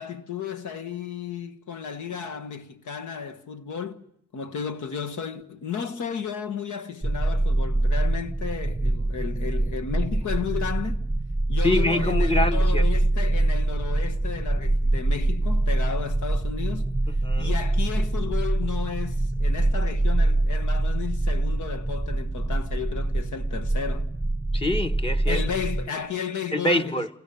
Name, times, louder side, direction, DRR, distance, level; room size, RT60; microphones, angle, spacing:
voice 1, 0.0-4.0 4.3-11.0 11.5-16.9 17.4-24.1 25.3-27.1, left 7 dB, 80° left, 1.5 m, -33 dB
sound 1, 7.0-25.9, right 2 dB, ahead, 1.2 m, -24 dB
voice 2, 11.6-12.9 17.1-17.6 24.5-25.4 26.5-27.1, left 1 dB, 20° left, 1.3 m, -25 dB
29.0 x 28.0 x 7.0 m
cardioid pair, 115°, 30 cm